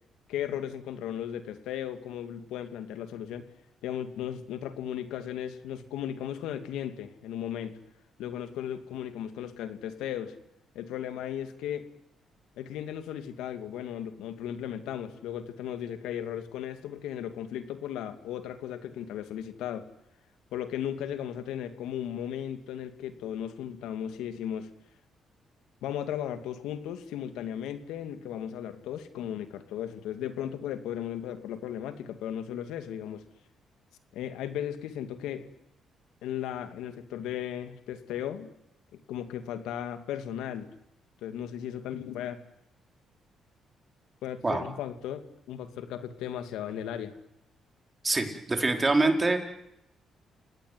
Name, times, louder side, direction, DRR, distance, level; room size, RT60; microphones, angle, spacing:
voice 1, 0.3-3.5 3.8-7.8 8.2-10.4 10.7-11.8 12.6-19.9 20.5-24.7 25.8-33.2 34.1-35.5 36.2-38.5 39.1-40.7 41.2-42.4 44.2-47.1, left 10 dB, 90° left, 9 dB, 2.6 m, -36 dB
voice 2, 48.0-49.4, right 2 dB, 25° right, 5 dB, 4.7 m, -25 dB
29.0 x 18.5 x 9.6 m, 0.82 s
cardioid pair, 90°, 0 cm